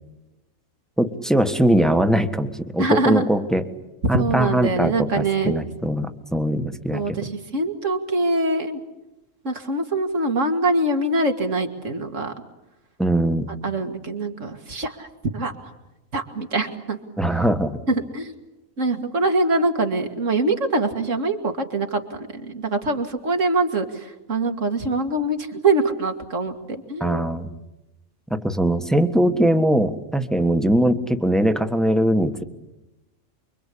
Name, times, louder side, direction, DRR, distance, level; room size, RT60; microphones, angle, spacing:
voice 1, 1.0-3.6 4.1-7.1 13.0-13.5 17.2-17.8 27.0-27.5 28.3-32.4, right 1 dB, ahead, 8 dB, 1.4 m, -21 dB
voice 2, 2.8-3.3 4.1-5.6 6.9-8.8 9.4-12.3 13.6-15.1 15.3-15.7 16.1-17.0 17.9-18.3 18.8-27.3, right 2 dB, 65° right, 6 dB, 2.7 m, -24 dB
29.0 x 23.5 x 8.6 m, 0.98 s
omnidirectional pair, 1.4 m